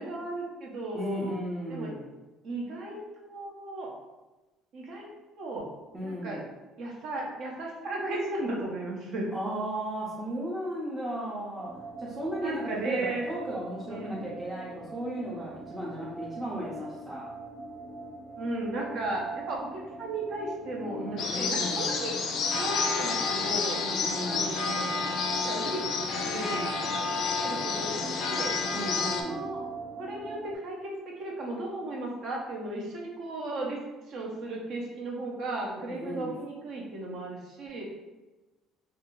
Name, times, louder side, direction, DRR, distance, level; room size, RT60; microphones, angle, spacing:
voice 1, 0.0-1.3 1.7-1.9 2.4-3.9 4.7-5.1 5.4-5.7 6.0-6.4 6.8-9.3 12.4-13.2 13.9-14.3 18.4-22.1 22.5-23.8 24.2-24.9 25.5-25.8 26.2-26.8 27.4-28.5 29.2-29.6 30.0-30.9 31.2-33.8 34.1-37.8, right 2 dB, 55° right, -1 dB, 0.7 m, -35 dB
voice 2, 0.9-2.1 5.9-6.5 9.3-11.7 12.0-17.2 21.0-21.9 23.8-24.6 28.7-29.5 35.8-36.3, right 1 dB, 15° right, -6 dB, 0.6 m, -35 dB
sound 1, 11.6-30.6, right 2 dB, 90° right, 1.2 m, -43 dB
sound 2, 21.2-29.2, left 4 dB, 55° left, 0.4 m, -30 dB
2.6 x 2.4 x 3.0 m, 1.1 s
cardioid pair, 115°, 0 cm